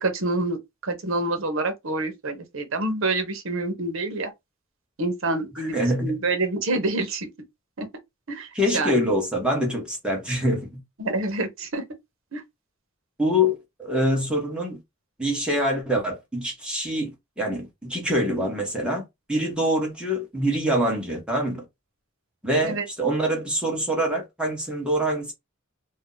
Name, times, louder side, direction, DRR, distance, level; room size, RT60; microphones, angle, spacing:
voice 1, 0.0-4.3 5.0-7.3 7.8-7.9 8.3-8.5 8.7-9.0 11.0-11.8 12.3-12.4 22.6-22.8, right 2 dB, 70° right, 0.8 m, -27 dB
voice 2, 5.7-6.1 8.5-10.8 13.2-14.8 15.2-19.0 19.3-21.6 22.4-25.3, equal, 5° right, 1.0 m, -25 dB
2.7 x 2.1 x 3.7 m
head